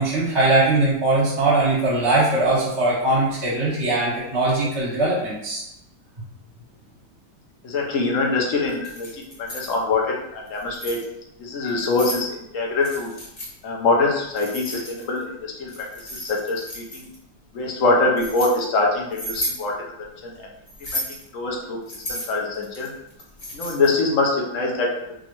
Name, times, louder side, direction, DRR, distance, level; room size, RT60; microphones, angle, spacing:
voice 1, 0.0-5.6, right 2 dB, 15° right, -9 dB, 1.2 m, -20 dB
voice 2, 7.6-11.0 11.4-13.1 13.6-15.7 16.1-17.1 17.5-19.8 20.2-20.5 20.8-22.9 23.5-25.1, left 3 dB, 60° left, 0 dB, 0.9 m, -24 dB
Keys jangling, 8.7-9.7 10.5-11.0 11.7-12.2 12.8-13.5 14.4-15.2 15.7-17.1 17.8-18.5 19.1-19.6 20.7-21.2 21.9-24.0, left 1 dB, 30° left, 0.8 m, -33 dB
5.1 x 2.5 x 2.9 m, 0.81 s
omnidirectional pair, 2.0 m